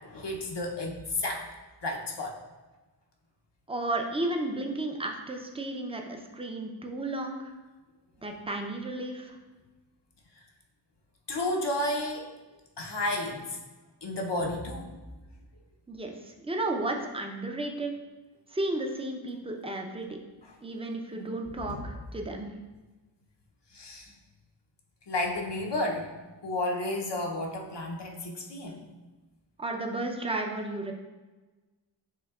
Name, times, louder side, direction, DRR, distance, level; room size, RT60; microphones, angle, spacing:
voice 1, 0.0-1.5 1.8-2.4 11.3-12.3 12.8-13.6 14.0-14.9 20.4-20.5 21.6-21.9 23.7-24.1 25.1-26.1 26.4-28.8, left 1 dB, 65° left, 0 dB, 0.7 m, -32 dB
voice 2, 3.7-7.5 8.2-9.3 15.9-17.9 18.5-20.2 20.6-22.6 29.6-30.9, right 2 dB, 15° right, 2 dB, 0.5 m, -33 dB
6.6 x 2.8 x 2.3 m, 1.2 s
wide cardioid pair, 40°, 45 cm